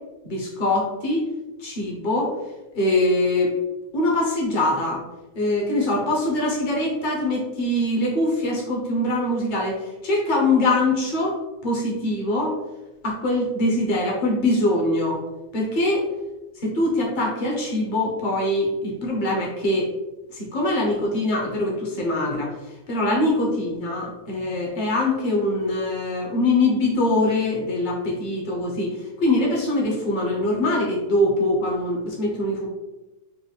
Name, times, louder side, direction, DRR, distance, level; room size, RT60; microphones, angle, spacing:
voice 1, 0.2-1.2 1.6-2.3 2.7-3.5 3.9-5.0 5.3-11.4 11.6-12.5 13.0-15.2 15.5-16.0 16.6-19.9 20.3-22.5 22.9-32.7, left 1 dB, 60° left, -3 dB, 0.4 m, -23 dB
5.2 x 2.4 x 3.2 m, 1.1 s
omnidirectional pair, 2.2 m